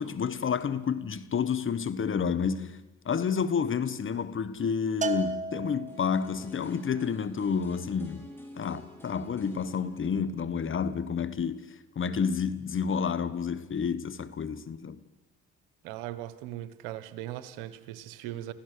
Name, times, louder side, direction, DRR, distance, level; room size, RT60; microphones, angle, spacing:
voice 1, 0.0-8.3 8.5-11.7 11.9-15.0, left 6 dB, 40° left, 1.3 m, -30 dB
Bell, 5.0-6.4, right 3 dB, 25° right, 1.6 m, -33 dB
sound 1, 5.9-11.8 12.1-12.2, left 1 dB, 5° left, 6.4 m, -48 dB
voice 2, 15.8-18.5, right 13 dB, 90° right, 1.2 m, -39 dB
26.0 x 15.5 x 6.7 m
supercardioid pair, 70°, 31 cm